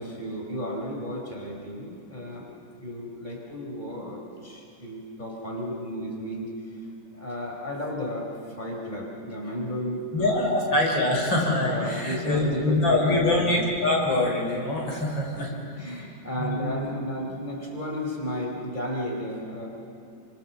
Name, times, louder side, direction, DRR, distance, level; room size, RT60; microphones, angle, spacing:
voice 1, 0.0-2.5 2.8-6.5 7.1-10.4 11.6-13.3 15.4-19.7, equal, 20° left, -1 dB, 4.7 m, -33 dB
voice 2, 10.1-15.5 16.4-16.7, left 2 dB, 65° left, -1 dB, 4.6 m, -24 dB
30.0 x 25.5 x 7.2 m, 2.6 s
omnidirectional pair, 2.2 m